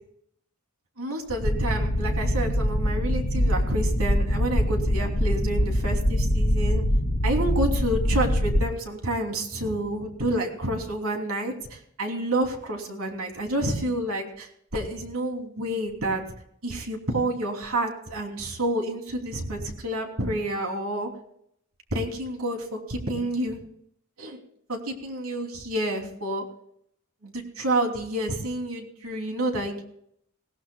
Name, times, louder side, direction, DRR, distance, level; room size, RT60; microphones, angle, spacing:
voice 1, 1.0-6.8 7.2-16.2 16.6-21.1 21.9-23.6 24.2-24.4 24.7-26.4 27.2-29.8, right 1 dB, 85° right, 2 dB, 3.1 m, -29 dB
sound 1, 1.4-8.7, equal, 65° left, 1.7 m, -24 dB
20.0 x 17.0 x 2.3 m, 0.71 s
head